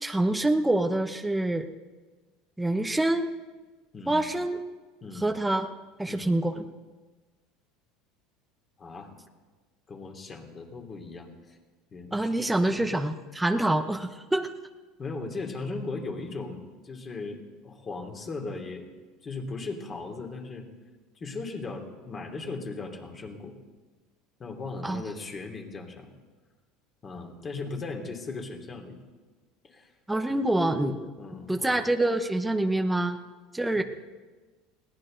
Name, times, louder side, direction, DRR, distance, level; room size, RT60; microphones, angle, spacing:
voice 1, 0.0-1.7 2.6-3.3 4.1-4.6 5.2-5.7 6.0-6.6 12.1-14.5 24.8-25.0 30.1-31.1 31.5-33.2 33.5-33.8, right 1 dB, 5° right, 6 dB, 1.0 m, -26 dB
voice 2, 3.9-4.3 5.0-5.4 6.1-6.3 8.8-9.1 9.9-11.6 11.9-12.9 15.0-18.8 19.2-20.7 21.2-23.6 24.4-26.1 27.0-29.0 29.6-29.9 31.2-31.9, left 3 dB, 30° left, 2 dB, 3.0 m, -38 dB
21.0 x 16.5 x 3.9 m, 1.3 s
supercardioid pair, 110°, 0 cm